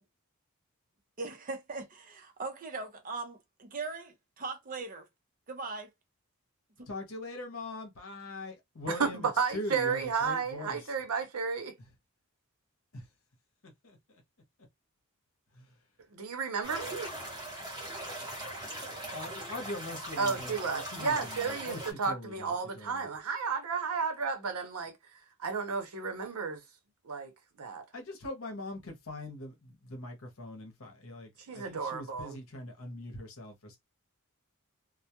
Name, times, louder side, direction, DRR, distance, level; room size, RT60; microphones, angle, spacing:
voice 1, 1.2-5.1 5.5-5.9 6.8-6.9, right 3 dB, 40° right, 0.5 m, -40 dB
voice 2, 6.9-10.9 12.9-13.0 13.6-14.2 15.5-15.7 19.1-23.1 27.9-33.8, left 1 dB, 65° left, 0.8 m, -42 dB
voice 3, 9.4-11.7 16.1-17.1 20.2-24.9 25.4-26.6 27.0-27.3 27.6-27.8 31.5-32.4, right 5 dB, 80° right, 0.7 m, -32 dB
sound 1, 16.6-21.9, right 1 dB, 15° right, 0.8 m, -40 dB
2.2 x 2.1 x 2.8 m
head